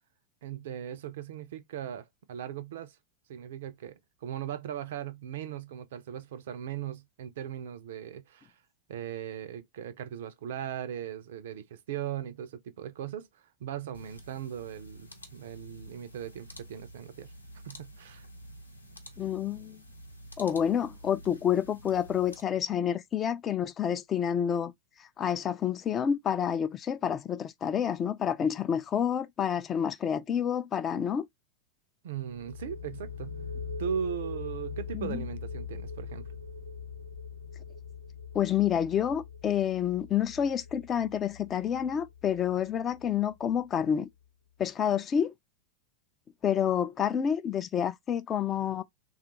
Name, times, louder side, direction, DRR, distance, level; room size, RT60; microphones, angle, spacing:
voice 1, 0.4-3.0 3.3-8.6 8.9-17.3 17.6-18.3 32.0-33.4 33.8-36.3, right 9 dB, 55° right, 0.5 m, -38 dB
sound 1, 13.9-22.4, equal, 85° left, 0.8 m, -49 dB
voice 2, 19.2-19.8 20.4-24.7 25.0-31.3 34.9-35.2 38.3-44.1 44.6-45.3 46.4-48.8, left 9 dB, 25° left, 0.4 m, -28 dB
sound 2, 32.3-43.8, left 5 dB, 90° right, 0.7 m, -42 dB
3.5 x 2.4 x 2.9 m
figure-of-eight pair, 90°, 0 cm